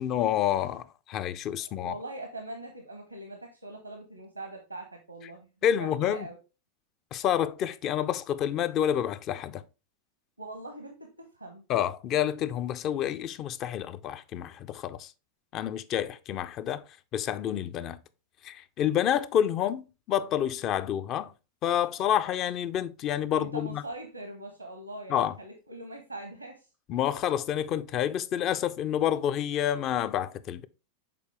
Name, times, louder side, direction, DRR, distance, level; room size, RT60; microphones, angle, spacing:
voice 1, 0.0-1.9 5.6-6.3 7.1-9.6 11.7-15.1 15.5-16.8 17.1-18.0 18.4-21.3 21.6-23.8 25.1-25.3 26.9-30.7, left 10 dB, 35° left, 0.4 m, -28 dB
voice 2, 1.7-5.5 5.8-6.4 10.4-11.6 23.4-26.7, right 2 dB, 85° right, 0.9 m, -42 dB
6.8 x 4.2 x 3.4 m
figure-of-eight pair, 90°, 0 cm